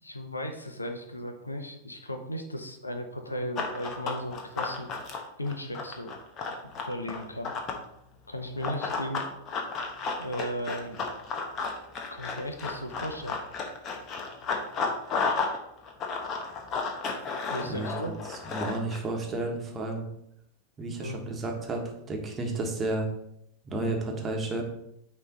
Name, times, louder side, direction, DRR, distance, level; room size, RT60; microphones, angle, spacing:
voice 1, 0.0-4.9 5.4-6.1 6.8-7.5 8.3-9.3 10.2-11.1 12.1-13.4 17.5-18.2 20.9-21.2, equal, 80° left, 5 dB, 0.8 m, -36 dB
Run, 3.6-7.9 8.6-15.6 15.8-19.0, left 4 dB, 30° left, 1.1 m, -32 dB
voice 2, 18.3-20.0 20.8-23.1 23.7-24.6, right 2 dB, 20° right, 1 dB, 1.4 m, -32 dB
9.3 x 3.3 x 3.9 m, 0.76 s
figure-of-eight pair, 90°, 0 cm